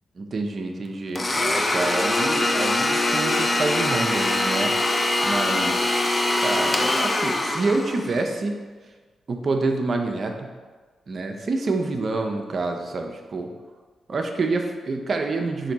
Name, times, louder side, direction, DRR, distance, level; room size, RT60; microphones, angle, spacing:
voice 1, 0.2-4.7 5.2-5.9 6.4-8.5 9.3-10.5 11.1-13.5 14.1-15.7, right 3 dB, 55° right, 4 dB, 0.5 m, -27 dB
Domestic sounds home sounds, 1.2-8.2, left 2 dB, 30° left, 0.4 m, -23 dB
4.2 x 2.6 x 4.0 m, 1.4 s
supercardioid pair, 55°, 0 cm